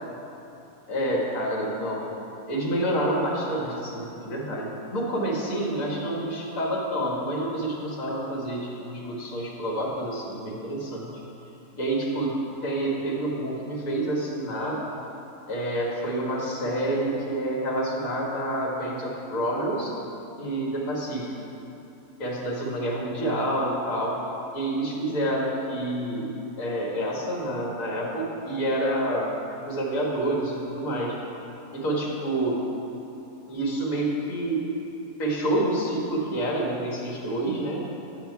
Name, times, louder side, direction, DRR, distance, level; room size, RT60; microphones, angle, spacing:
voice 1, 0.9-2.1 2.5-11.2 11.7-12.3 12.6-14.8 15.5-19.9 20.4-21.3 22.2-24.2 24.5-29.3 29.6-31.2 31.7-32.6 33.5-34.8 35.2-37.8, right 1 dB, 60° left, -3 dB, 1.8 m, -28 dB
7.5 x 7.2 x 4.6 m, 2.9 s
omnidirectional pair, 1.7 m